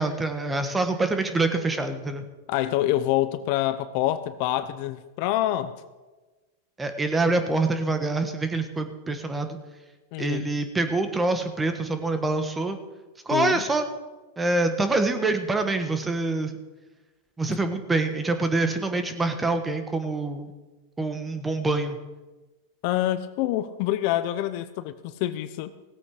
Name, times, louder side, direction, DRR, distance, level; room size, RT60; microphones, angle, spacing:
voice 1, 0.0-2.2 6.8-9.6 10.2-12.8 13.2-13.9 14.4-16.5 17.4-20.5 21.0-22.0, right 2 dB, 15° right, 8 dB, 1.4 m, -25 dB
voice 2, 2.5-5.7 10.1-10.5 13.3-13.6 17.5-17.6 22.8-25.7, left 14 dB, 55° left, 13 dB, 0.7 m, -26 dB
17.0 x 8.3 x 5.0 m, 1.2 s
hypercardioid pair, 115°, 0 cm